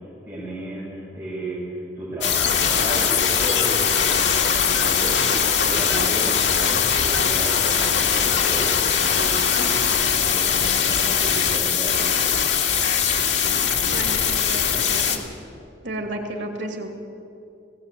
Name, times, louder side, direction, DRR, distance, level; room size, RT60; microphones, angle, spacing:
voice 1, 0.0-9.7 10.0-12.2, right 1 dB, 15° right, -10 dB, 6.6 m, -34 dB
sound 1, 2.2-15.2, left 7 dB, 80° left, 2.1 m, -21 dB
sound 2, 2.4-10.0, left 4 dB, 60° left, 0.9 m, -30 dB
voice 2, 13.9-15.2 15.8-16.9, right 1 dB, 90° right, 3 dB, 2.6 m, -32 dB
18.5 x 16.5 x 8.5 m, 2.6 s
head